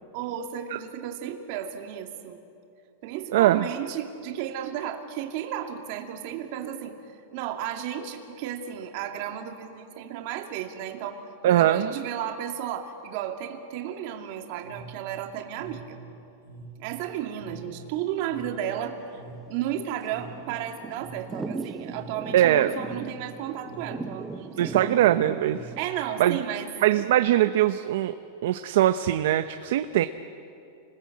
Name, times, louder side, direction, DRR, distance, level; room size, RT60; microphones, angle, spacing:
voice 1, 0.1-2.4 3.0-16.0 16.8-19.2 19.5-25.1 25.8-26.7, right 10 dB, 45° right, 4 dB, 2.6 m, -34 dB
voice 2, 3.3-3.7 11.4-11.9 22.3-22.7 24.6-25.7 26.2-26.4 26.8-28.2 28.4-30.1, right 13 dB, 65° right, 10 dB, 0.8 m, -21 dB
sound 1, 14.6-26.2, right 4 dB, 80° right, 4.8 m, -46 dB
Thunder / Rain, 18.9-25.9, right 3 dB, 5° right, 0.9 m, -39 dB
29.0 x 20.5 x 8.6 m, 2.6 s
supercardioid pair, 160°, 0 cm